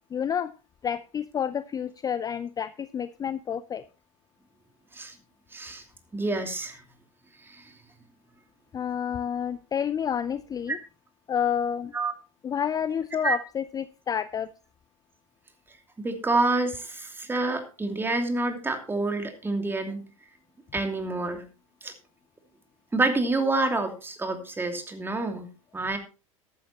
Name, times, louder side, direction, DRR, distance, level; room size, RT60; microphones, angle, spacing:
voice 1, 0.1-0.5 0.8-3.8 8.7-10.8 11.3-11.9 12.4-14.5, left 8 dB, 20° left, 15 dB, 0.5 m, -29 dB
voice 2, 5.5-5.8 6.1-6.8 7.5-7.7 10.7-10.8 11.9-12.1 13.2-13.4 16.0-20.0 20.7-21.4 21.8-21.9 22.9-25.5 25.7-26.0, right 2 dB, 15° right, 5 dB, 2.8 m, -28 dB
14.5 x 12.0 x 2.9 m, 0.32 s
figure-of-eight pair, 85°, 17 cm